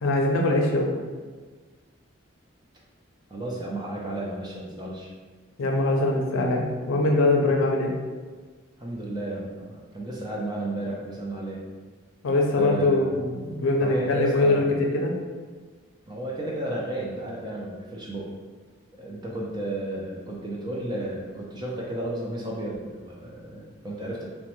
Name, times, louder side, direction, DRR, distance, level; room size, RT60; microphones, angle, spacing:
voice 1, 0.0-0.9 5.6-7.9 12.2-15.1, left 2 dB, 85° left, 0 dB, 0.5 m, -22 dB
voice 2, 3.3-5.1 8.8-11.6 12.6-13.1 13.8-14.7 16.1-18.4 19.0-24.2, right 1 dB, 20° right, -3 dB, 0.4 m, -33 dB
3.0 x 2.1 x 3.0 m, 1.4 s
head